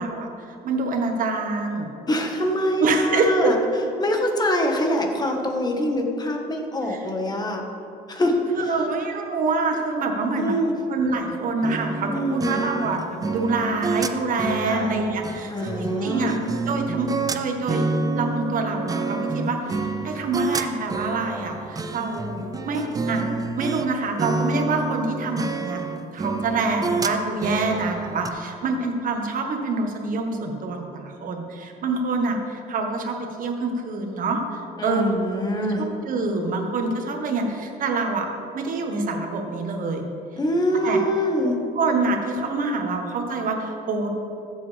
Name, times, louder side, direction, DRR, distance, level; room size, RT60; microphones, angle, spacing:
voice 1, 0.0-1.9 2.8-3.5 6.9-7.0 8.5-10.5 10.9-16.3 16.7-17.8 18.1-23.2 23.6-25.8 26.1-35.2 35.7-38.3 38.5-40.0 40.8-41.0 41.7-44.1, right 3 dB, 55° right, 3 dB, 1.5 m, -26 dB
voice 2, 2.1-3.6 4.0-7.6 8.1-8.7 10.3-10.7 12.1-12.6 14.6-15.0 15.5-16.3 34.8-35.8 40.4-41.6, equal, 25° left, 2 dB, 1.5 m, -24 dB
sound 1, 11.6-23.9 24.2-28.3, right 3 dB, 20° right, 0.5 m, -28 dB
14.5 x 7.8 x 3.5 m, 2.8 s
cardioid pair, 110°, 17 cm